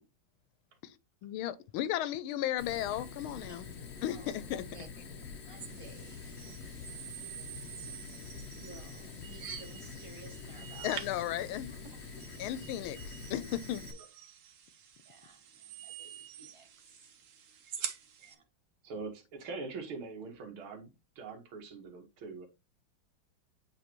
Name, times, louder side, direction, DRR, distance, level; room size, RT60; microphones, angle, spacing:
voice 1, 1.2-3.7 4.0-4.6 10.8-11.7 12.4-13.9, left 12 dB, 85° left, 1.5 m, -35 dB
Fire, 2.6-13.9, left 4 dB, 45° left, 0.9 m, -46 dB
voice 2, 5.5-6.5 7.3-7.5 8.1-10.9 12.4-12.5 15.1-17.1 18.3-18.4, right 3 dB, 30° right, 0.6 m, -55 dB
sound 1, 5.6-18.3, right 8 dB, 55° right, 0.9 m, -47 dB
voice 3, 18.8-22.5, right 4 dB, 90° right, 2.2 m, -43 dB
8.3 x 3.8 x 3.0 m
omnidirectional pair, 2.3 m